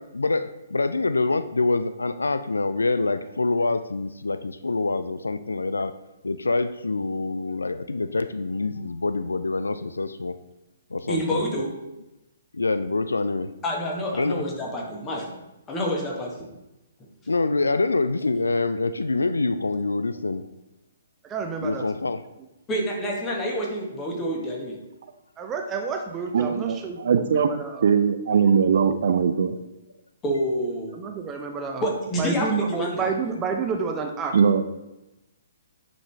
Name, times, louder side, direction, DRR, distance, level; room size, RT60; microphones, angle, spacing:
voice 1, 0.1-5.9 6.2-10.3 10.9-11.4 12.5-13.5 14.1-14.4 17.3-20.5 21.6-22.2, left 3 dB, 75° left, 12 dB, 0.3 m, -25 dB
voice 2, 11.1-11.7 13.6-15.3 15.7-16.4 22.7-24.8 30.2-31.0 31.8-33.1, equal, 20° left, -1 dB, 1.5 m, -28 dB
voice 3, 21.2-21.9 25.4-27.9 30.9-31.8 32.2-34.4, right 5 dB, 15° right, 3 dB, 0.7 m, -29 dB
voice 4, 26.3-29.5 34.3-34.6, right 6 dB, 55° right, 9 dB, 0.4 m, -21 dB
9.1 x 4.2 x 3.3 m, 0.96 s
figure-of-eight pair, 125°, 0 cm